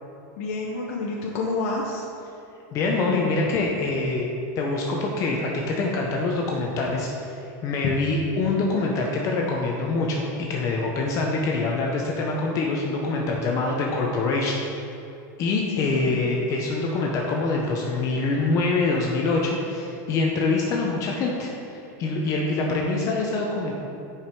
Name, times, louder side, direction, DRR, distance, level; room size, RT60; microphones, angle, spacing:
voice 1, 0.4-2.0 15.7-16.2, left 3 dB, 65° left, -2 dB, 1.0 m, -29 dB
voice 2, 2.7-4.3 4.6-14.6 15.4-23.7, left 3 dB, 35° left, -1 dB, 0.8 m, -25 dB
8.5 x 5.2 x 4.7 m, 2.7 s
supercardioid pair, 155°, 9 cm